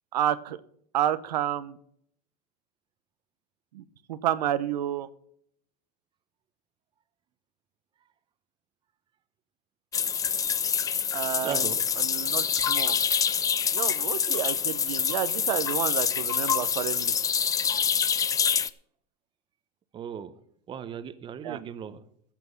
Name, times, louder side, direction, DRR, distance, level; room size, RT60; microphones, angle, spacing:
voice 1, 0.1-0.6 0.9-1.8 3.7-3.8 4.1-5.1 11.1-11.7 12.0-13.0 13.7-17.1 21.4-21.6, right 11 dB, 85° right, 13 dB, 0.9 m, -30 dB
sound 1, 9.9-18.7, left 7 dB, 15° left, 0.5 m, -26 dB
voice 2, 11.4-11.8 19.9-20.3 20.7-22.0, right 8 dB, 25° right, 13 dB, 0.9 m, -37 dB
14.5 x 6.1 x 7.0 m, 0.66 s
supercardioid pair, 135°, 21 cm